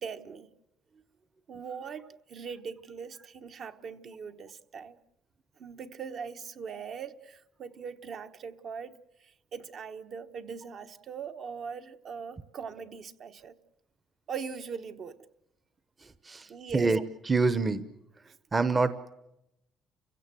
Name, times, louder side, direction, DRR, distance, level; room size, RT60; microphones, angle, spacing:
voice 1, 0.0-0.5 1.5-2.0 2.3-5.0 5.6-13.5 14.3-15.2 16.5-16.9, right 6 dB, 50° right, 1.1 m, -41 dB
voice 2, 16.0-17.8 18.5-19.1, right 3 dB, 25° right, 0.9 m, -27 dB
30.0 x 16.5 x 7.6 m
cardioid pair, 110°, 0 cm